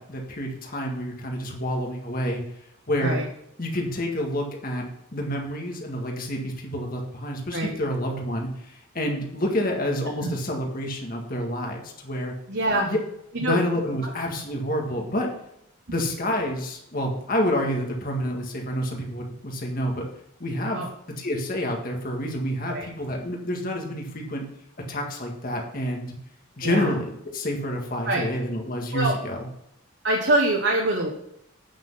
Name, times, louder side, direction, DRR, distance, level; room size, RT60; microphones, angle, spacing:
voice 1, 0.0-2.4 2.9-3.2 3.6-4.9 5.1-12.3 12.9-13.0 13.4-15.3 15.9-20.1 20.4-20.8 21.2-24.4 24.9-26.1 26.6-29.4, equal, 40° left, 1 dB, 1.8 m, -28 dB
voice 2, 12.5-12.9 13.3-13.6 20.7-20.9 22.7-22.9 26.6-26.9 28.0-28.2 28.9-29.2 30.0-31.1, right 1 dB, 55° right, 0 dB, 1.2 m, -24 dB
8.8 x 6.1 x 5.6 m, 0.78 s
head